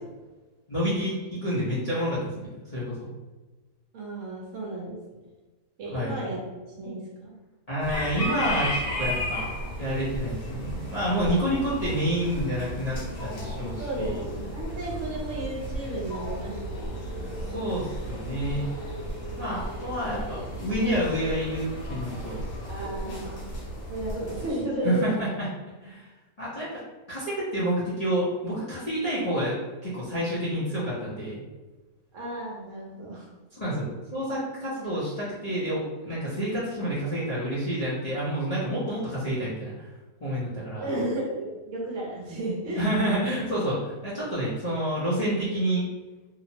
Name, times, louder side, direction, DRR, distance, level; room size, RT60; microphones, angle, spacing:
voice 1, 0.7-3.1 5.9-6.2 7.7-9.5 9.8-14.2 17.5-18.6 19.4-22.4 24.8-25.5 25.8-26.1 26.4-26.7 27.1-31.4 33.5-39.9 40.2-40.9 42.8-45.8, equal, 35° left, -11 dB, 0.7 m, -29 dB
voice 2, 3.9-5.0 5.8-6.4 6.8-7.3 13.6-16.8 17.1-17.7 22.7-23.4 23.9-25.3 32.1-33.3 40.7-42.9, right 1 dB, 65° right, -4 dB, 1.0 m, -33 dB
sound 1, 7.8-24.5, equal, 60° left, 1.2 m, -34 dB
2.8 x 2.0 x 2.7 m, 1.2 s
omnidirectional pair, 1.5 m